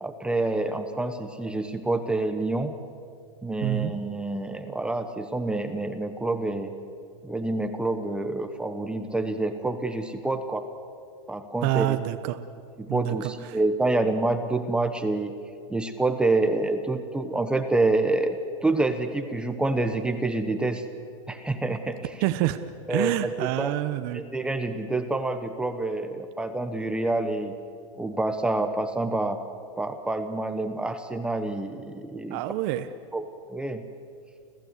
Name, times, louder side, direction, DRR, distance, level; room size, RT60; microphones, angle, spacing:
voice 1, 0.0-2.7 3.4-6.7 7.2-10.7 11.3-12.0 12.8-15.4 15.7-20.8 21.3-22.1 22.9-23.7 24.1-27.6 28.0-29.4 29.8-32.4 33.1-33.8, right 2 dB, 5° right, 8 dB, 1.0 m, -27 dB
voice 2, 3.6-3.9 11.6-12.4 12.9-13.6 22.2-22.6 22.9-24.2 32.3-32.9, right 15 dB, 45° right, 9 dB, 1.0 m, -27 dB
30.0 x 14.5 x 8.1 m, 2.3 s
supercardioid pair, 145°, 16 cm